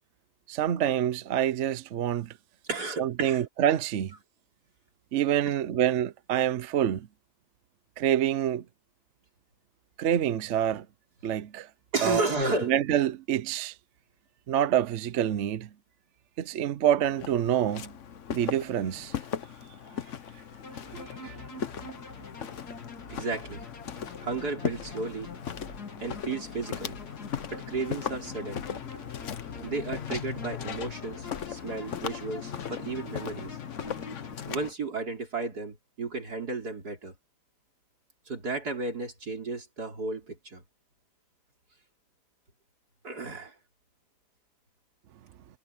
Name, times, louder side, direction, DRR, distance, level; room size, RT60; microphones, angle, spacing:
voice 1, 0.5-2.3 3.0-4.1 5.1-7.1 8.0-8.6 10.0-10.9 11.2-11.7 12.0-12.2 12.6-13.7 14.5-15.7 16.4-17.9 18.3-19.1 20.9-21.4, right 10 dB, 60° right, 0.9 m, -27 dB
voice 2, 2.7-3.4 11.9-12.7 21.2-21.3 23.1-23.6 24.2-25.3 26.0-27.0 27.5-28.6 29.6-33.6 34.5-37.1 38.3-40.6 43.0-43.6, right 3 dB, 80° right, 4.6 m, -33 dB
Walk footsteps, 17.0-34.7, left 8 dB, 55° left, 1.3 m, -38 dB
sound 1, 20.6-34.3, left 3 dB, 80° left, 3.1 m, -45 dB
omnidirectional pair, 1.7 m